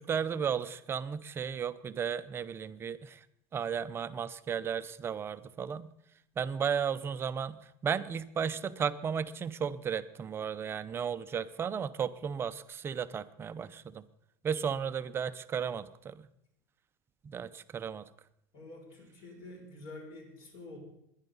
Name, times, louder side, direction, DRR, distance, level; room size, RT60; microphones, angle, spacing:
voice 1, 0.0-3.2 3.5-5.9 6.4-14.0 14.4-16.3 17.2-18.1, right 7 dB, 25° right, 13 dB, 0.6 m, -34 dB
voice 2, 18.5-20.8, left 2 dB, 55° left, 0 dB, 6.0 m, -48 dB
21.5 x 10.5 x 4.0 m, 0.78 s
supercardioid pair, 140°, 10 cm